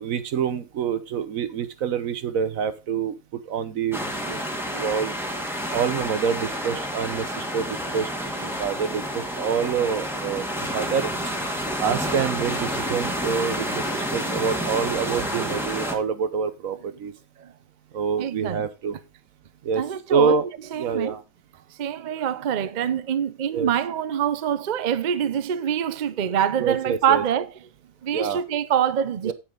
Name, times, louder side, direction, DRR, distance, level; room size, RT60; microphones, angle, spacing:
voice 1, 0.0-4.4 4.7-5.2 5.7-8.1 8.4-11.3 11.8-17.1 17.9-19.0 19.6-19.8 20.1-20.5 20.8-21.2 23.5-23.7 26.6-27.2 28.1-28.4 29.2-29.3, right 6 dB, 75° right, 1.3 m, -26 dB
sound 1, 3.9-15.9, equal, ahead, 1.4 m, -29 dB
voice 2, 18.2-18.6 19.8-20.4 20.7-21.1 21.8-27.5 28.0-29.3, right 9 dB, 50° right, 0.5 m, -25 dB
8.5 x 7.9 x 3.9 m
omnidirectional pair, 1.4 m